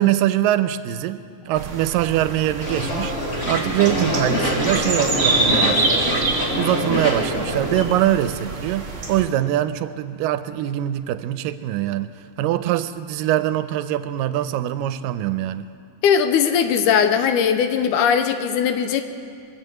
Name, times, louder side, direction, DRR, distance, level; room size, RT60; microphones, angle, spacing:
voice 1, 0.0-3.1 3.5-6.1 6.6-15.7, right 12 dB, 90° right, 12 dB, 2.2 m, -23 dB
sound 1, 1.5-9.3, right 3 dB, 30° right, 2.3 m, -27 dB
sound 2, 2.6-7.8, left 1 dB, 30° left, 1.7 m, -24 dB
voice 2, 16.0-19.0, left 7 dB, 80° left, 8 dB, 2.0 m, -19 dB
23.0 x 7.8 x 7.8 m, 2.3 s
omnidirectional pair, 3.9 m